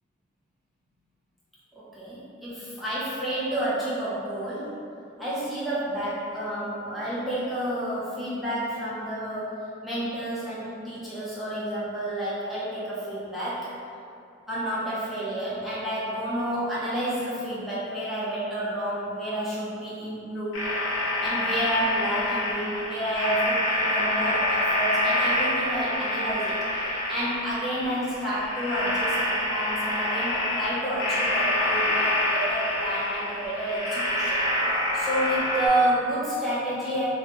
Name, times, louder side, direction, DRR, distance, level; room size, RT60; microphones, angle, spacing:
voice 1, 1.9-4.8 5.2-13.7 14.5-20.6 21.2-34.4 34.9-37.1, right 1 dB, ahead, -11 dB, 0.4 m, -30 dB
sound 1, 20.5-35.7, left 1 dB, 85° left, 0.7 m, -27 dB
2.9 x 2.2 x 2.7 m, 2.6 s
head